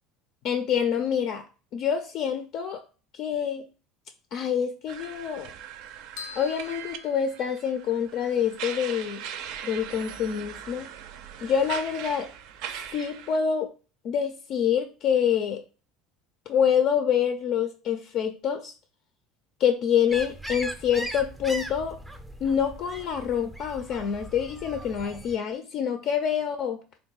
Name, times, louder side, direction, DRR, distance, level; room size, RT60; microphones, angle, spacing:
voice 1, 0.4-1.4 1.7-2.8 3.1-3.6 4.3-5.5 6.4-9.2 9.6-10.9 11.4-12.3 12.9-13.7 14.0-15.6 16.5-18.7 19.6-22.0 22.4-26.8, left 8 dB, 55° left, 7 dB, 0.4 m, -26 dB
sound 1, 4.9-13.4, right 9 dB, 70° right, 0.4 m, -40 dB
sound 2, 6.2-7.9, left 8 dB, 90° left, 0.7 m, -44 dB
sound 3, 20.1-25.4, right 1 dB, 5° right, 0.4 m, -39 dB
3.6 x 2.2 x 4.0 m, 0.35 s
supercardioid pair, 130°, 0 cm